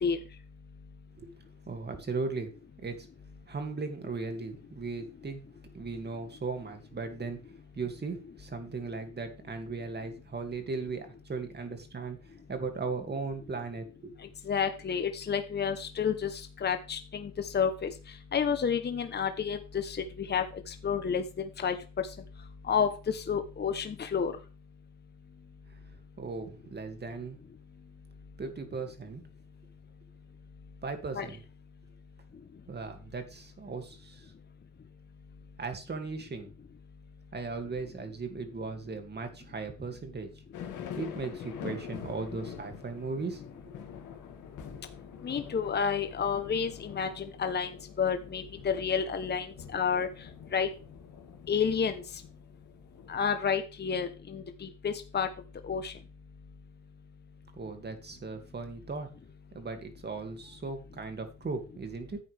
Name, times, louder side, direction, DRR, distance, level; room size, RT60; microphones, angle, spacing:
voice 1, 1.7-2.5 2.8-3.1 3.5-5.4 5.7-7.4 7.7-14.1 26.2-27.4 28.4-29.2 30.8-31.4 32.7-34.3 35.6-36.5 37.3-40.3 41.0-43.8 57.5-59.1 59.5-62.2, right 4 dB, 35° right, 6 dB, 2.5 m, -37 dB
voice 2, 14.5-17.9 18.3-21.8 22.7-24.3 31.1-31.3 45.2-49.5 49.7-50.1 50.5-50.7 51.5-52.0 53.1-55.3 55.6-55.9, left 6 dB, 35° left, 8 dB, 1.0 m, -30 dB
sound 1, 40.5-53.3, left 8 dB, 80° left, 2.5 m, -45 dB
11.0 x 8.5 x 3.5 m, 0.33 s
cardioid pair, 90°, 30 cm